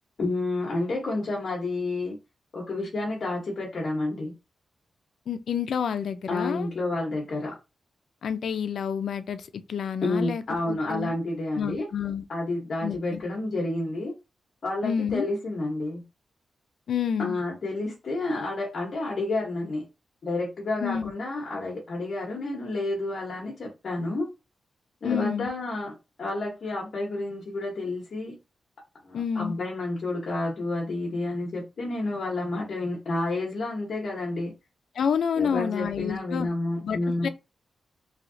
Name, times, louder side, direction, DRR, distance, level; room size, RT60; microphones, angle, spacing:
voice 1, 0.2-2.2 2.5-4.3 6.3-7.5 10.0-11.9 12.3-14.1 14.6-16.0 17.2-19.8 20.2-24.3 25.0-25.9 26.2-28.4 29.0-34.5 35.3-37.3, left 2 dB, 50° left, 0.9 m, -30 dB
voice 2, 5.3-6.7 8.2-10.4 10.7-11.1 11.6-12.2 12.8-13.2 14.8-15.3 16.9-17.4 20.8-21.1 25.0-25.5 29.1-29.6 35.0-36.5 36.8-37.3, left 7 dB, 75° left, 0.3 m, -29 dB
3.1 x 2.7 x 2.6 m
wide cardioid pair, 160°, 0 cm